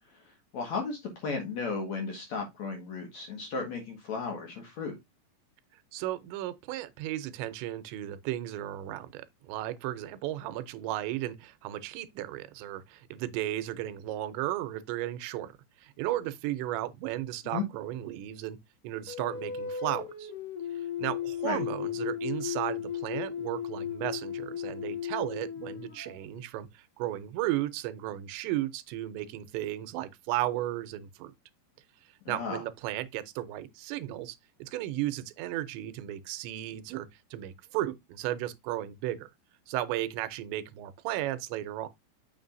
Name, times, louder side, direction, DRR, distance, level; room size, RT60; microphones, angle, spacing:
voice 1, 0.5-5.0 17.4-17.7 21.4-21.6 32.3-32.6, left 4 dB, 55° left, 2.3 m, -34 dB
voice 2, 5.9-15.5 15.8-18.6 18.8-20.3 21.0-31.3 32.3-39.3 39.7-41.9, right 14 dB, 90° right, 3.0 m, -34 dB
sound 1, 19.1-26.4, left 8 dB, 85° left, 1.2 m, -35 dB
7.3 x 5.8 x 2.6 m
omnidirectional pair, 5.0 m